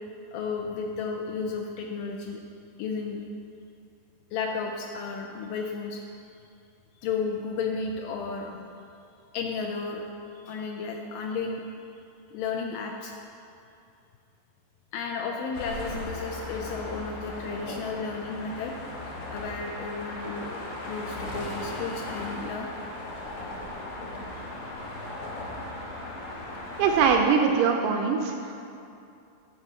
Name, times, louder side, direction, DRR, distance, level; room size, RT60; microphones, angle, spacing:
voice 1, 0.3-2.4 2.8-3.2 4.3-6.0 7.0-8.8 9.3-10.0 10.4-11.6 12.3-13.1 14.9-18.7 19.3-22.7 24.1-24.2, left 5 dB, 80° left, 1 dB, 2.0 m, -33 dB
sound 1, 15.5-27.1, left 1 dB, 65° left, 2.2 m, -37 dB
voice 2, 26.8-28.5, right 6 dB, 80° right, 3 dB, 1.9 m, -22 dB
8.2 x 4.8 x 6.6 m, 2.6 s
omnidirectional pair, 4.2 m